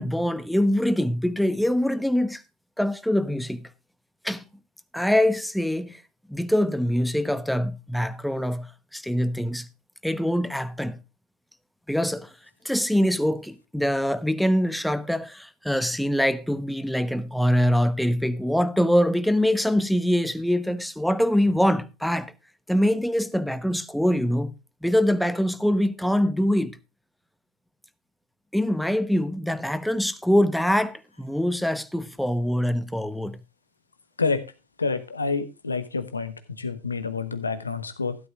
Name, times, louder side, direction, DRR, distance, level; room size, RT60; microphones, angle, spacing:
voice 1, 0.0-2.4 2.8-3.7 4.2-4.4 4.9-6.0 6.3-9.7 10.0-11.0 11.9-12.3 12.6-22.3 22.7-24.5 24.8-26.8 28.5-33.4, equal, ahead, 1.0 m, -24 dB
voice 2, 34.8-38.2, left 4 dB, 90° left, 1.2 m, -28 dB
14.0 x 12.0 x 2.4 m
figure-of-eight pair, 75°, 0 cm